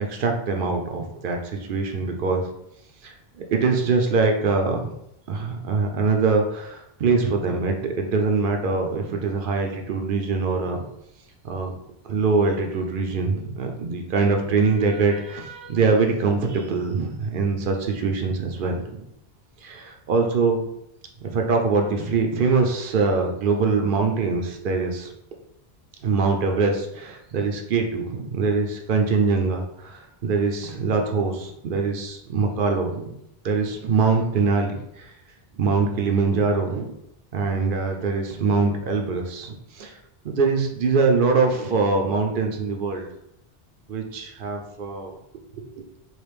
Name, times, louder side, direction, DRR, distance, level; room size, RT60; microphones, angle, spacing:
voice 1, 0.0-1.4 1.7-2.5 3.0-3.1 3.5-4.9 5.3-10.8 11.4-11.7 12.1-19.0 19.6-20.6 21.2-25.1 26.0-33.1 33.4-35.1 35.6-36.9 37.3-40.0 40.2-43.1 43.9-45.1 45.6-45.8, right 4 dB, 65° right, 3 dB, 0.7 m, -23 dB
3.1 x 2.5 x 3.3 m, 0.78 s
omnidirectional pair, 1.1 m